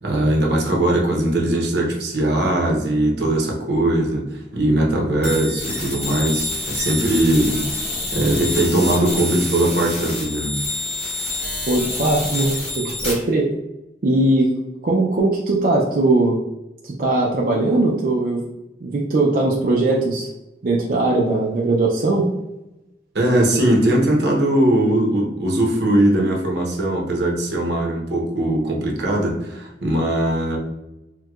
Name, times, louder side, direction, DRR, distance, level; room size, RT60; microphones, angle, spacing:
voice 1, 0.0-7.7 8.1-10.6 23.1-30.6, right 1 dB, 75° right, -1 dB, 0.8 m, -20 dB
sound 1, 5.2-13.1, left 2 dB, 35° left, 1.1 m, -27 dB
voice 2, 11.7-13.5 14.0-14.5 14.8-16.4 16.8-18.5 18.8-20.3 20.6-22.3, right 2 dB, 50° right, -2 dB, 0.4 m, -19 dB
4.4 x 2.2 x 2.3 m, 0.95 s
head